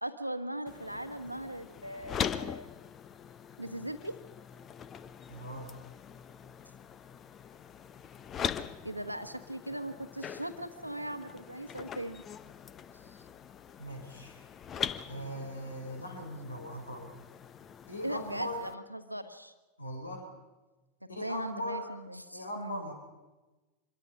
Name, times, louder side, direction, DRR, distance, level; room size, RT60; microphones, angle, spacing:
voice 1, 0.0-2.7 3.6-4.2 8.8-12.2 13.0-13.2 18.0-19.5 21.2-22.8, right 1 dB, 90° right, 9 dB, 1.4 m, -39 dB
sound 1, 0.7-18.7, left 8 dB, 25° left, 0.8 m, -42 dB
voice 2, 5.3-5.7 13.8-14.5 15.1-17.2 17.9-18.6 19.8-20.3 21.1-21.9 22.3-22.9, equal, 80° left, 4 dB, 4.2 m, -39 dB
25.5 x 22.5 x 5.5 m, 1.2 s
figure-of-eight pair, 90°, 0 cm